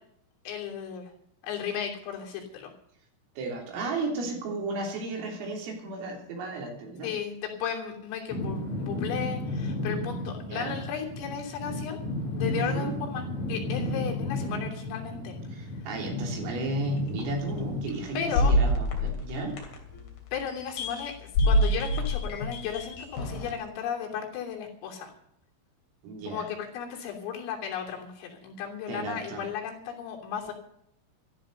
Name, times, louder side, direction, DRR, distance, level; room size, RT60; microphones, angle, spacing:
voice 1, 0.5-1.1 1.4-2.7 7.0-12.0 12.3-15.4 18.2-18.5 20.3-25.1 26.3-30.5, left 8 dB, 80° left, 0 dB, 5.7 m, -35 dB
voice 2, 3.4-7.1 10.5-10.8 12.5-12.9 15.5-19.6 26.0-26.5 28.9-29.5, right 2 dB, 80° right, 1 dB, 6.1 m, -33 dB
sound 1, 8.3-18.4, left 1 dB, 30° left, 3.7 m, -33 dB
sound 2, 17.2-17.3 18.3-20.0 20.8-21.1 21.4-23.5, left 1 dB, 55° left, 4.2 m, -25 dB
14.5 x 13.0 x 6.6 m, 0.73 s
omnidirectional pair, 5.8 m